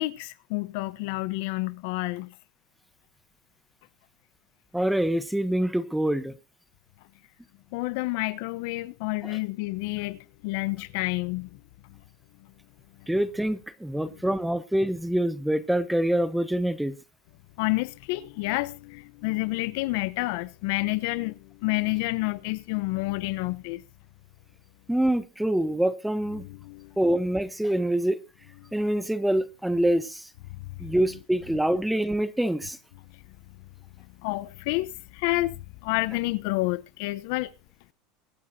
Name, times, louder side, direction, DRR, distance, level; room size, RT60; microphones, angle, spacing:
voice 1, 0.0-2.3 7.7-11.6 11.9-12.0 13.0-13.2 14.0-14.1 17.6-23.8 26.3-27.0 28.6-28.7 30.5-31.2 33.1-33.2 34.2-37.5, left 21 dB, 70° left, 0.9 m, -29 dB
voice 2, 4.7-6.3 9.2-9.4 13.1-16.9 24.9-26.4 27.0-28.2 28.7-30.3 30.8-32.8, right 1 dB, 5° right, 1.0 m, -25 dB
24.0 x 9.3 x 2.8 m
supercardioid pair, 135°, 0 cm